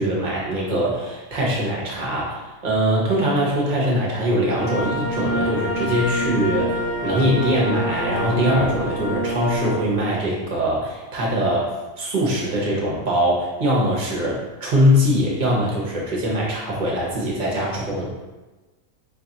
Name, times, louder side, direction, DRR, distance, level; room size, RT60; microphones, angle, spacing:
voice 1, 0.0-18.1, equal, 45° right, -4 dB, 0.7 m, -22 dB
sound 1, 4.6-9.8, equal, 65° left, 0.6 m, -25 dB
2.5 x 2.4 x 3.9 m, 1.2 s
omnidirectional pair, 1.6 m